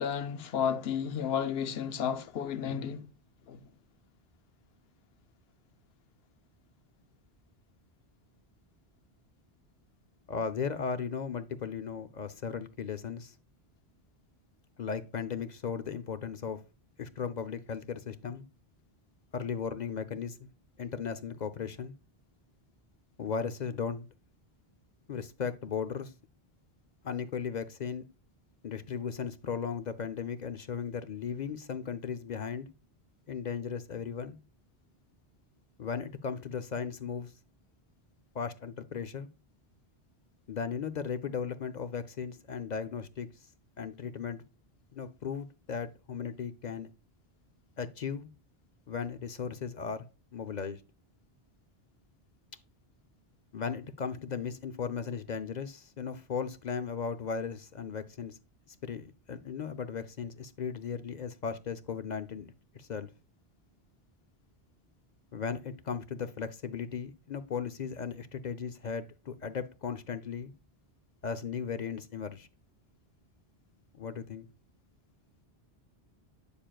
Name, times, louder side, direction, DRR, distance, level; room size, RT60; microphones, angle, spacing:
voice 1, 0.0-3.1 3.5-3.6, left 8 dB, 70° left, 0.9 m, -32 dB
voice 2, 10.3-13.3 14.8-16.6 17.0-18.5 19.3-20.5 20.8-21.9 23.2-24.1 25.1-26.1 27.0-28.0 28.6-32.7 33.3-34.4 35.8-37.3 38.3-39.3 40.5-43.3 43.8-44.4 44.9-46.9 47.8-48.3 48.9-50.1 50.3-50.8 53.5-58.4 58.8-63.1 65.3-70.5 71.2-72.5 74.0-74.5, left 6 dB, 55° left, 0.6 m, -36 dB
8.9 x 6.8 x 2.3 m
omnidirectional pair, 1.1 m